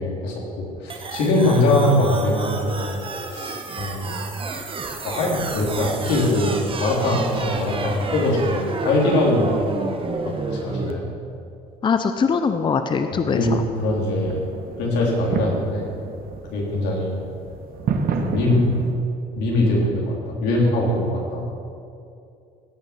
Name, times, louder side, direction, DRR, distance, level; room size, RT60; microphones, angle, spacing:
voice 1, 0.0-3.0 3.3-4.2 5.0-9.5 10.2-11.1 13.1-13.5 13.8-14.4 14.8-15.9 16.5-17.2 18.2-18.7 19.4-21.5, left 1 dB, 85° left, -3 dB, 3.5 m, -22 dB
sound 1, 0.9-10.9, right 4 dB, 30° right, 1.1 m, -31 dB
voice 2, 11.8-13.6, left 5 dB, 30° left, 8 dB, 0.6 m, -22 dB
sound 2, 13.8-18.9, right 5 dB, 60° right, 1.2 m, -30 dB
17.0 x 6.7 x 5.9 m, 2.5 s
cardioid pair, 110°, 17 cm